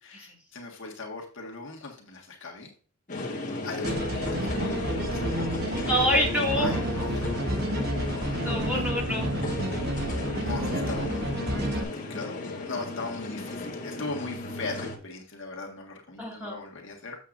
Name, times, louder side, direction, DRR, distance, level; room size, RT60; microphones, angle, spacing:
voice 1, 0.0-2.7 3.6-5.9 6.6-7.1 8.0-8.8 10.4-17.2, left 3 dB, 55° left, 0 dB, 1.7 m, -39 dB
sound 1, 3.1-15.0, left 2 dB, 35° left, 1.5 m, -35 dB
sound 2, 3.8-11.8, equal, 45° right, 1.2 m, -30 dB
voice 2, 5.9-6.8 8.4-9.3 16.2-16.6, equal, 5° right, -3 dB, 2.2 m, -26 dB
8.0 x 7.2 x 2.6 m, 0.40 s
head